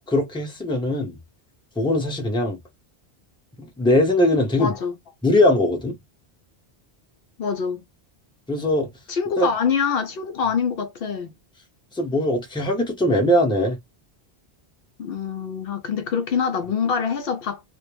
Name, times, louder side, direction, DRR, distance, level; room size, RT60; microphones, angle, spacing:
voice 1, 0.1-1.2 1.8-2.6 3.6-4.7 5.2-6.0 8.5-8.9 9.4-9.5 11.9-13.8, left 1 dB, 5° left, 0.7 m, -21 dB
voice 2, 4.6-4.9 7.4-7.8 9.1-11.3 15.0-17.6, left 6 dB, 65° left, 0.7 m, -25 dB
2.3 x 2.1 x 3.2 m
omnidirectional pair, 1.1 m